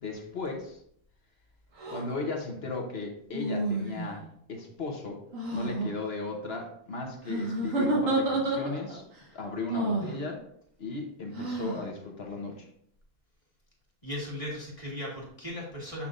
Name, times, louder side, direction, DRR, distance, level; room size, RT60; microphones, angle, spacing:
voice 1, 0.0-0.8 1.9-5.2 5.5-9.0 9.3-10.4 10.8-12.7, left 3 dB, 50° left, 2 dB, 1.2 m, -36 dB
sound 1, 1.8-2.0 3.3-4.2 5.3-5.9 7.3-9.0 9.7-10.2 11.3-11.8, right 2 dB, 70° right, 1.8 m, -29 dB
voice 2, 14.0-16.1, left 1 dB, 25° left, -4 dB, 1.8 m, -37 dB
8.3 x 5.7 x 2.5 m, 0.67 s
omnidirectional pair, 1.4 m